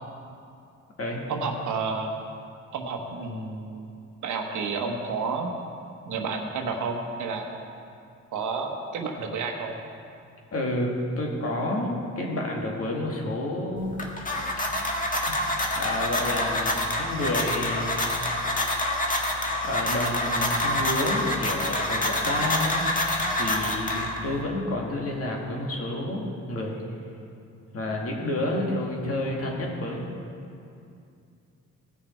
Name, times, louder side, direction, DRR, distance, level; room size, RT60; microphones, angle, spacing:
voice 1, 1.3-2.1 2.7-3.9 4.2-5.6 6.1-7.5 8.3-9.8 23.1-23.2, right 4 dB, 75° right, 3 dB, 1.3 m, -30 dB
voice 2, 10.5-14.0 15.3-15.4 15.7-18.0 19.6-22.9 23.3-26.8 27.7-30.1, left 1 dB, 50° left, -1 dB, 2.2 m, -29 dB
sound 1, 13.8-24.4, left 1 dB, 25° left, 1.6 m, -27 dB
17.0 x 6.3 x 4.6 m, 2.5 s
cardioid pair, 90°, 30 cm